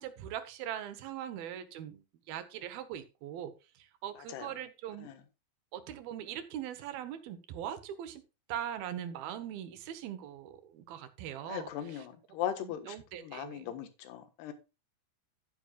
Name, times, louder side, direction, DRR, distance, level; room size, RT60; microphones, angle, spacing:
voice 1, 0.0-5.1 5.7-8.2 8.5-12.1 12.6-13.7, right 10 dB, 70° right, 2.9 m, -41 dB
voice 2, 11.5-13.0 13.2-14.5, left 10 dB, 85° left, 3.5 m, -38 dB
12.0 x 10.0 x 2.4 m
omnidirectional pair, 4.6 m